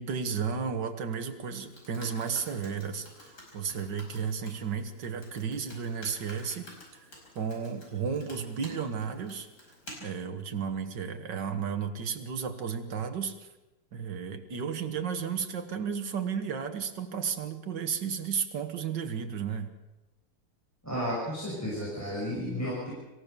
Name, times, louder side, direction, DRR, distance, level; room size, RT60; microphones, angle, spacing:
voice 1, 0.0-6.7 6.9-7.1 7.4-9.5 10.0-13.4 13.9-19.7, right 6 dB, 55° right, 7 dB, 2.1 m, -33 dB
Computer keyboard, 1.5-9.9, left 1 dB, 45° left, 5.9 m, -51 dB
voice 2, 20.8-22.9, equal, 5° left, -7 dB, 6.3 m, -33 dB
26.0 x 15.0 x 6.9 m, 1.0 s
omnidirectional pair, 2.4 m